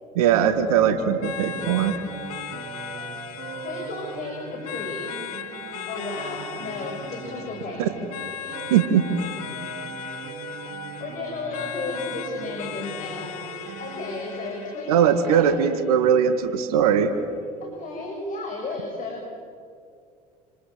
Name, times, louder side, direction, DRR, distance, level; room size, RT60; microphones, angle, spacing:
voice 1, 0.2-2.0 7.8-7.9 8.7-9.0 14.9-17.1, right 8 dB, 70° right, 8 dB, 1.8 m, -20 dB
sound 1, 0.7-14.8, right 6 dB, 55° right, 3.3 m, -39 dB
sound 2, 1.2-16.2, left 11 dB, 70° left, 1.4 m, -38 dB
voice 2, 3.6-5.1 5.9-7.8 8.4-8.5 11.0-15.5 17.6-19.2, left 3 dB, 40° left, 0 dB, 6.9 m, -34 dB
29.0 x 27.5 x 7.5 m, 2.3 s
figure-of-eight pair, 65°, 20 cm